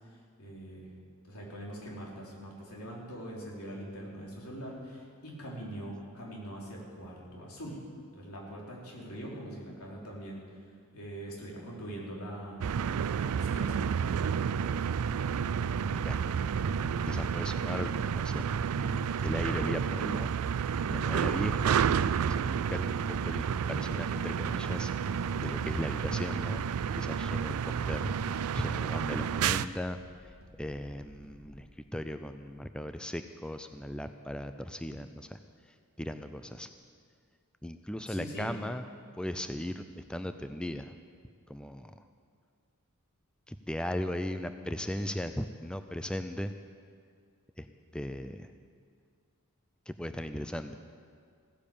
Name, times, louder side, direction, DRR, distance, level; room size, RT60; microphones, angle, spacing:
voice 1, 0.1-0.9 1.2-7.8 8.1-10.4 10.9-12.7 13.2-13.9 38.1-38.5, right 1 dB, 70° left, -3 dB, 3.5 m, -43 dB
sound 1, 12.6-29.7, right 7 dB, 70° right, 0.4 m, -30 dB
voice 2, 15.9-16.4 17.0-18.5 19.2-20.3 20.6-21.8 22.2-24.9 25.4-26.7 26.9-30.3 30.6-35.4 35.7-36.7 37.6-38.8 39.2-41.0 41.5-42.0 43.5-46.5 47.6-47.7 47.9-48.5 49.9-50.8, left 1 dB, 5° left, 9 dB, 0.4 m, -37 dB
sound 2, 25.0-31.6, equal, 35° left, 3.7 m, -56 dB
16.0 x 10.0 x 7.1 m, 2.1 s
head